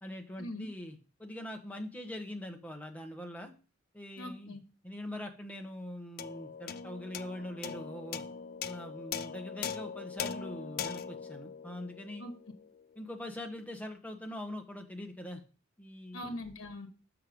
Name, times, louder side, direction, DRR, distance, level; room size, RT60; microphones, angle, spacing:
voice 1, 0.0-3.5 3.9-4.6 4.8-8.2 8.6-12.2 13.0-15.4 15.8-16.2, left 1 dB, 5° left, 3 dB, 1.0 m, -43 dB
voice 2, 4.2-4.6 12.2-12.3 16.1-16.9, left 1 dB, 70° left, 4 dB, 1.2 m, -41 dB
sound 1, 6.2-12.8, left 7 dB, 45° left, 0.4 m, -41 dB
6.7 x 5.9 x 5.1 m, 0.36 s
head